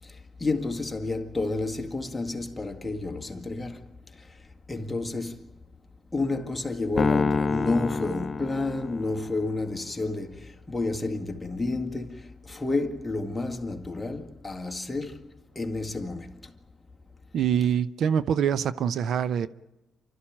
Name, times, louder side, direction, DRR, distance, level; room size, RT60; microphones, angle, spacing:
voice 1, 0.0-4.4 4.7-5.6 6.1-16.5, left 2 dB, 15° left, 2.0 m, -31 dB
Piano, 7.0-9.4, left 4 dB, 30° left, 0.9 m, -27 dB
voice 2, 17.3-19.5, right 8 dB, 70° right, 0.7 m, -25 dB
29.0 x 13.5 x 8.8 m
cardioid pair, 90°, 0 cm